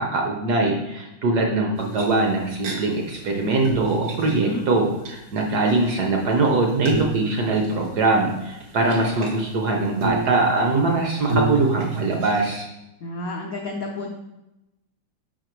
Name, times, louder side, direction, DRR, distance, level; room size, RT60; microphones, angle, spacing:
voice 1, 0.0-12.7, right 3 dB, 60° right, 1 dB, 1.1 m, -22 dB
sound 1, 1.7-2.7 3.1-3.2 3.5-5.1 5.4-9.4 10.0-12.5, right 3 dB, 90° right, 2.5 m, -30 dB
voice 2, 4.3-4.6 13.0-14.1, left 2 dB, 70° left, 0 dB, 0.8 m, -30 dB
5.8 x 5.0 x 4.5 m, 0.93 s
omnidirectional pair, 2.4 m